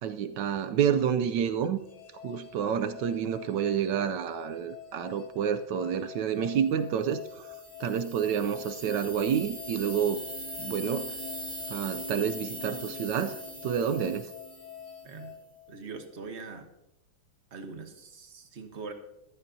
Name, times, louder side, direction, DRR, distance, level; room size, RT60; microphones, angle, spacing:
voice 1, 0.0-1.8 2.2-7.5 7.8-10.2 10.6-11.2 11.7-14.3, right 8 dB, 70° right, 9 dB, 1.1 m, -29 dB
sound 1, 1.8-16.2, left 9 dB, 65° left, 2.0 m, -47 dB
sound 2, 7.2-15.1, right 1 dB, 25° right, 2.5 m, -41 dB
voice 2, 15.7-16.7 17.5-18.9, right 4 dB, 40° right, 6 dB, 1.3 m, -42 dB
15.0 x 13.0 x 2.7 m, 0.89 s
omnidirectional pair, 2.1 m